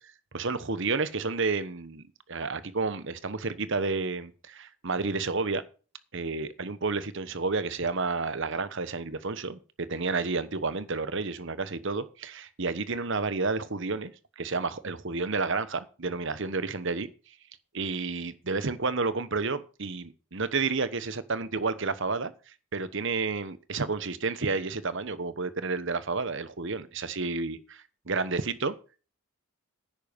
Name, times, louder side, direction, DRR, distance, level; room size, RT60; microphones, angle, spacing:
voice 1, 0.3-2.0 2.3-5.6 6.1-17.1 17.7-22.3 22.7-28.7, right 4 dB, 55° right, 14 dB, 1.1 m, -30 dB
10.5 x 9.2 x 5.3 m, 0.35 s
head